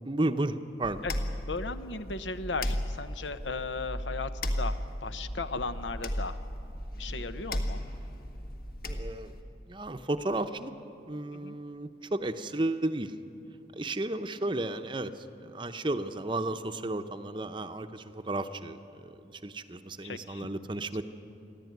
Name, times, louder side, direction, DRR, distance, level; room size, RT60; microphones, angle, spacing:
voice 1, 0.0-1.0 8.9-9.3 9.7-10.7 11.1-13.1 13.7-21.0, right 2 dB, 25° right, 9 dB, 0.7 m, -33 dB
sound 1, 0.8-9.4, equal, 55° left, 1.7 m, -35 dB
voice 2, 1.5-6.4 7.0-7.8 11.3-11.6 20.0-20.5, left 3 dB, 85° left, 11 dB, 0.9 m, -36 dB
29.0 x 11.5 x 9.4 m, 2.8 s
head